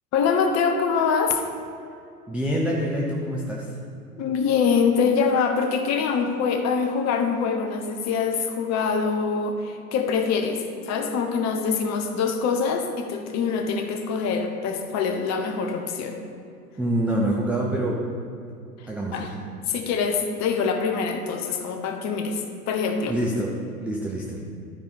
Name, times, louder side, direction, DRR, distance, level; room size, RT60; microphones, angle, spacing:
voice 1, 0.1-1.4 4.2-16.2 18.8-19.3 19.7-23.2, left 5 dB, 35° left, 5 dB, 1.0 m, -24 dB
voice 2, 2.3-3.8 16.8-18.0 18.9-19.3 23.1-23.5 23.8-24.4, right 1 dB, 5° right, -3 dB, 0.3 m, -26 dB
12.0 x 5.0 x 4.2 m, 2.5 s
hypercardioid pair, 95°, 46 cm